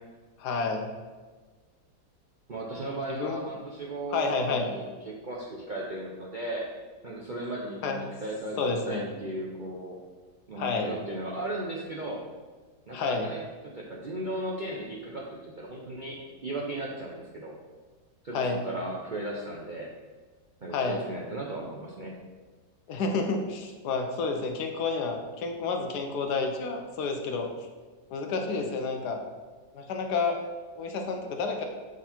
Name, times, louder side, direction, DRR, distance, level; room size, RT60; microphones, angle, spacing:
voice 1, 0.4-0.9 3.1-3.4 4.1-4.7 7.8-8.0 8.6-9.1 10.6-10.9 12.9-13.3 18.3-18.6 20.7-21.0 22.9-27.5 28.1-29.2 29.7-30.4 30.8-31.7, left 4 dB, 75° left, 4 dB, 1.3 m, -30 dB
voice 2, 2.5-6.7 7.0-10.0 10.5-12.2 12.9-13.4 13.7-17.6 18.2-19.9 20.6-22.2, right 1 dB, 50° right, -4 dB, 0.5 m, -36 dB
7.2 x 3.9 x 4.3 m, 1.4 s
omnidirectional pair, 1.8 m